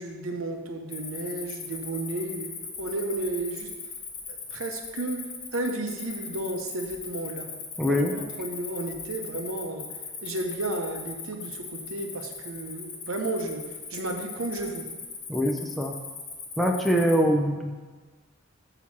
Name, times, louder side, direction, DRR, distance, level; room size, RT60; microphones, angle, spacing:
voice 1, 0.0-3.7 4.3-5.2 5.5-7.5 8.1-9.9 10.2-14.9, right 2 dB, 80° right, 4 dB, 0.8 m, -33 dB
Cricket, 0.9-17.2, left 5 dB, 85° left, 1.2 m, -39 dB
voice 2, 7.8-8.1 15.3-15.9 16.6-17.8, equal, ahead, 1 dB, 0.4 m, -23 dB
8.4 x 3.0 x 5.9 m, 1.4 s
head